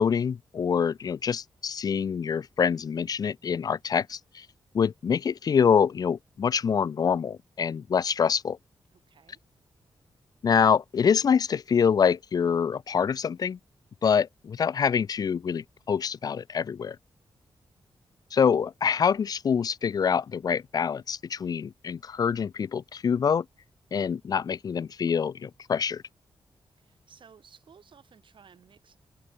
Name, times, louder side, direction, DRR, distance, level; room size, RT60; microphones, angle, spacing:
voice 1, 0.0-4.5 4.7-8.6 10.4-13.6 14.0-17.0 18.3-23.5 23.9-26.0, left 7 dB, 45° left, 0.3 m, -25 dB
voice 2, 8.9-9.4 26.8-29.0, right 7 dB, 65° right, 7.6 m, -56 dB
wide cardioid pair, 115°, 9 cm